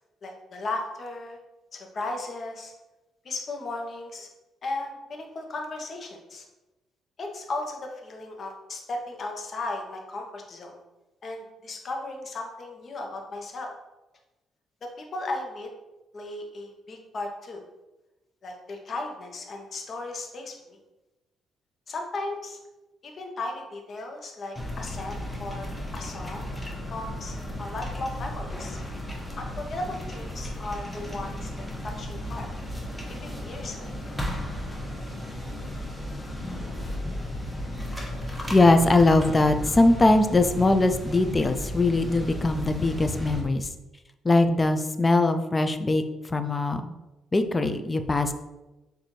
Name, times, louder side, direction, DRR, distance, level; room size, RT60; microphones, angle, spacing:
voice 1, 0.2-1.4 1.7-2.7 3.2-4.3 4.6-6.4 7.2-10.8 11.2-13.7 14.8-15.7 16.1-17.6 18.4-20.8 21.9-22.6 23.0-26.4 26.9-28.8 29.4-31.5 31.8-32.5 33.1-34.1, left 2 dB, 45° left, 2 dB, 0.9 m, -36 dB
sound 1, 24.5-43.4, left 1 dB, ahead, 0.9 m, -34 dB
voice 2, 38.5-43.7 44.2-46.9 47.3-48.3, left 2 dB, 25° left, 8 dB, 0.4 m, -21 dB
6.5 x 2.6 x 3.1 m, 1.0 s
cardioid pair, 90°, 0 cm